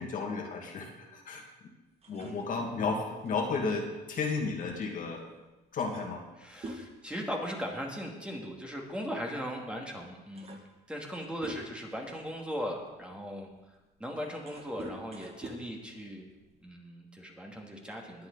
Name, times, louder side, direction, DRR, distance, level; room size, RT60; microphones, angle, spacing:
voice 1, 0.0-1.4 2.1-5.3 5.7-6.2, left 4 dB, 50° left, 1 dB, 2.2 m, -33 dB
sound 1, 2.0-5.0 5.4-5.5 5.8-8.0 8.2-8.5 9.5-9.6 10.0-12.0 12.6-16.7, right 1 dB, 35° right, 2.0 m, -47 dB
voice 2, 6.4-10.6 10.9-16.2 16.6-18.3, equal, 5° right, 0 dB, 2.4 m, -38 dB
20.5 x 8.4 x 4.1 m, 1.1 s
cardioid pair, 110°, 17 cm